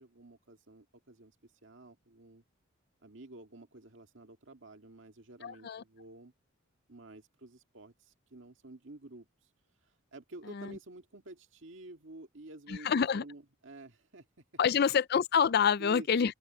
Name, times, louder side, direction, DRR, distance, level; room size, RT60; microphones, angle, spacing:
voice 1, 0.0-2.4 3.0-6.3 6.9-9.3 10.1-14.3 14.7-14.8 15.8-16.3, right 2 dB, 60° right, 2.0 m, -50 dB
voice 2, 5.4-5.8 10.5-10.7 12.7-13.2 14.6-16.3, left 7 dB, 50° left, 0.4 m, -27 dB
open air
head